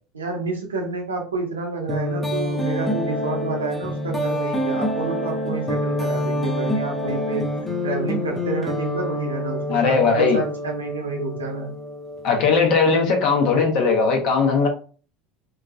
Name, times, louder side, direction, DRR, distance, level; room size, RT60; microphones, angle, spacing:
voice 1, 0.1-7.5 7.8-11.7, right 3 dB, 85° right, 0.8 m, -29 dB
sound 1, 1.9-12.5, left 1 dB, 10° left, 0.8 m, -27 dB
voice 2, 9.7-10.4 12.2-14.7, left 5 dB, 55° left, 0.9 m, -18 dB
2.9 x 2.5 x 2.4 m
hypercardioid pair, 75°, 0 cm